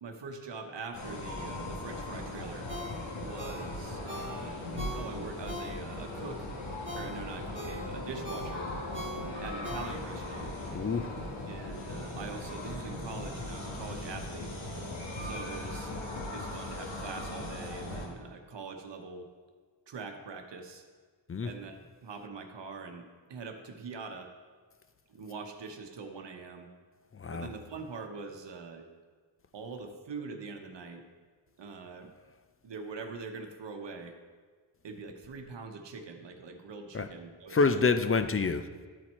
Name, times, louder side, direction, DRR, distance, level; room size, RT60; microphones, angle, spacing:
voice 1, 0.0-2.7 3.2-4.6 5.0-6.5 6.9-8.7 9.4-10.5 11.5-14.5 15.2-16.0 16.3-19.3 19.9-20.8 21.4-24.3 25.1-26.7 27.3-28.9 29.5-31.1 31.6-32.1 32.6-34.2 34.8-37.8, right 4 dB, 65° right, 5 dB, 1.0 m, -43 dB
sound 1, 0.9-18.1, left 1 dB, 80° left, 1.7 m, -39 dB
Ringtone, 2.7-6.1 6.5-10.3 10.7-10.8, equal, 25° right, 1.5 m, -43 dB
voice 2, 10.7-11.2 21.3-21.5 27.1-27.5 36.9-37.1 37.5-38.6, left 4 dB, 30° left, 10 dB, 0.5 m, -27 dB
10.5 x 4.5 x 4.3 m, 1.5 s
cardioid pair, 75°, 46 cm